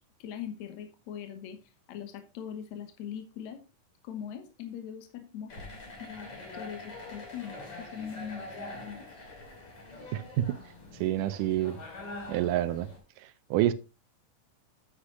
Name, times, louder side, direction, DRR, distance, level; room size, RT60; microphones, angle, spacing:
voice 1, 0.2-1.6 1.9-3.6 4.0-5.5 6.0-9.0, left 8 dB, 65° left, 2.2 m, -41 dB
sound 1, 5.5-13.0, left 2 dB, 45° left, 3.7 m, -44 dB
voice 2, 10.1-10.6 11.0-11.8 12.3-12.9 13.5-13.7, right 13 dB, 80° right, 2.2 m, -27 dB
9.9 x 8.1 x 3.0 m
omnidirectional pair, 3.9 m